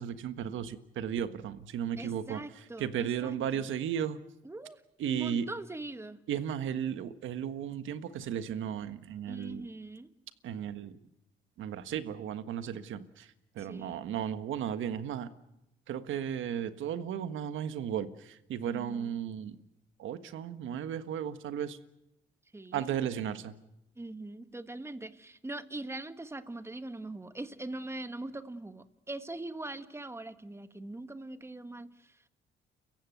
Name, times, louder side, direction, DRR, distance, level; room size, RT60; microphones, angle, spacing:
voice 1, 0.0-2.4 2.8-4.2 5.0-5.5 6.3-9.6 10.4-10.9 11.6-15.3 15.9-19.6 20.0-21.8 22.7-23.5, right 9 dB, 80° right, 11 dB, 1.5 m, -35 dB
voice 2, 2.0-3.7 4.4-4.8 5.1-6.2 9.3-10.1 13.6-14.0 18.7-19.2 22.5-23.3 23.9-32.2, right 2 dB, 15° right, 10 dB, 1.6 m, -42 dB
30.0 x 15.5 x 9.3 m, 0.89 s
cardioid pair, 90°, 20 cm